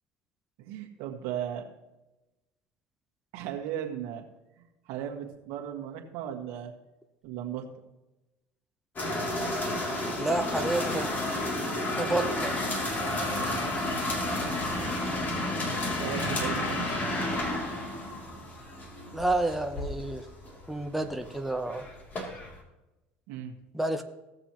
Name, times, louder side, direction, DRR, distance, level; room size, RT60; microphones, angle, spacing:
voice 1, 0.6-1.7 3.3-4.2 4.6-6.7 7.2-7.7 16.0-16.9 23.3-23.5, right 10 dB, 75° right, 2 dB, 1.8 m, -36 dB
sound 1, 9.0-22.6, left 1 dB, 35° left, 2.9 m, -31 dB
voice 2, 10.2-11.1 11.9-12.6 19.1-20.3 20.7-21.9 23.7-24.0, right 2 dB, 5° right, 5 dB, 0.8 m, -30 dB
17.5 x 6.8 x 3.0 m, 0.99 s
supercardioid pair, 90°, 5 cm